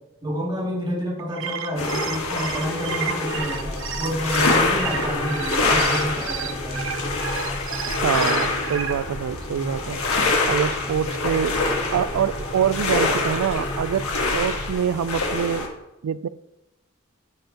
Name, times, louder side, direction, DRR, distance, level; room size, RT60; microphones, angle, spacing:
voice 1, 0.2-6.9, equal, 20° right, 2.4 m, -29 dB
sound 1, 1.2-8.9, right 8 dB, 65° right, 0.7 m, -32 dB
sound 2, 1.8-15.7, left 3 dB, 80° left, 1.6 m, -25 dB
sound 3, 3.4-14.7, left 1 dB, 15° left, 0.5 m, -35 dB
voice 2, 7.9-10.0 10.5-11.6 11.9-15.7 16.0-16.3, right 8 dB, 90° right, 0.3 m, -25 dB
14.0 x 5.6 x 2.9 m
head